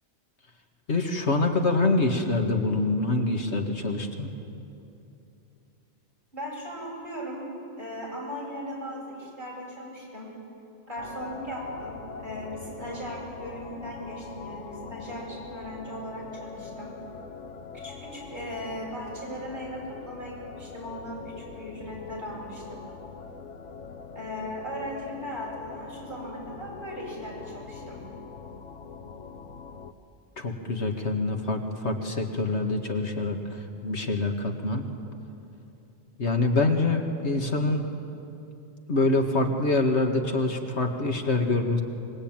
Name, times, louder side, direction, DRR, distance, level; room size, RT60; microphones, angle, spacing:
voice 1, 0.9-4.3 30.4-34.9 36.2-37.8 38.9-41.8, left 2 dB, 70° left, 3 dB, 2.1 m, -25 dB
voice 2, 6.3-7.4 7.8-10.3 10.9-16.9 17.7-22.8 24.1-28.0, equal, 45° right, -4 dB, 8.2 m, -38 dB
sound 1, 11.0-29.9, left 5 dB, 85° left, 1.4 m, -42 dB
25.5 x 22.5 x 9.0 m, 2.8 s
omnidirectional pair, 1.2 m